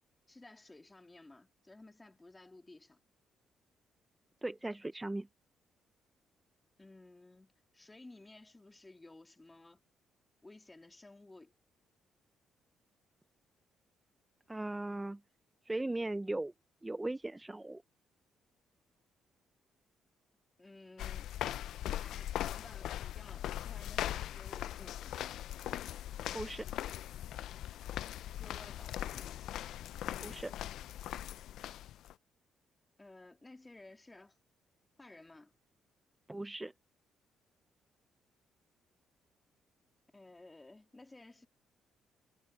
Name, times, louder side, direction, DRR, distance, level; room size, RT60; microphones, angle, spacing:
voice 1, 0.3-3.0 6.8-9.8 10.4-11.5 20.6-21.3 21.9-25.2 28.4-29.3 33.0-34.4 35.0-35.5 40.1-41.5, left 2 dB, 15° left, 2.4 m, -56 dB
voice 2, 4.4-5.3 14.5-15.2 15.7-16.5 16.8-17.8 26.3-26.7 30.2-30.5 36.3-36.7, right 2 dB, 15° right, 0.7 m, -38 dB
sound 1, 21.0-32.1, left 12 dB, 80° left, 0.4 m, -40 dB
cardioid pair, 90°, 0 cm